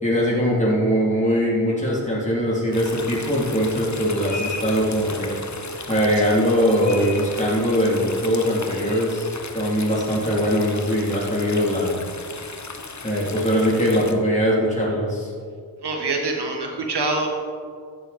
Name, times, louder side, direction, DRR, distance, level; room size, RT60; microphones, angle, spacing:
voice 1, 0.0-5.4 5.9-9.3 9.5-12.0 13.0-15.3, equal, 15° left, -5 dB, 3.2 m, -21 dB
sound 1, 2.7-14.1, left 4 dB, 40° left, 1.2 m, -35 dB
voice 2, 15.8-17.3, right 3 dB, 60° right, 1 dB, 1.7 m, -25 dB
14.5 x 7.5 x 4.3 m, 2.2 s
cardioid pair, 40°, 46 cm